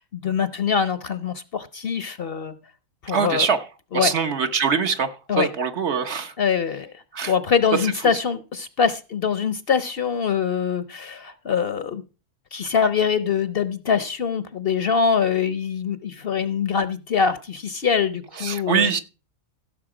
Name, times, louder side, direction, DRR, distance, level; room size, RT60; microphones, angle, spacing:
voice 1, 0.0-2.6 3.0-3.5 3.9-4.1 5.3-5.5 6.4-6.9 7.3-12.0 12.5-18.9, left 6 dB, 55° left, 0.8 m, -23 dB
voice 2, 3.1-3.6 3.9-6.3 7.1-7.3 18.4-19.0, right 6 dB, 55° right, 1.2 m, -23 dB
16.0 x 6.6 x 4.9 m
omnidirectional pair, 1.4 m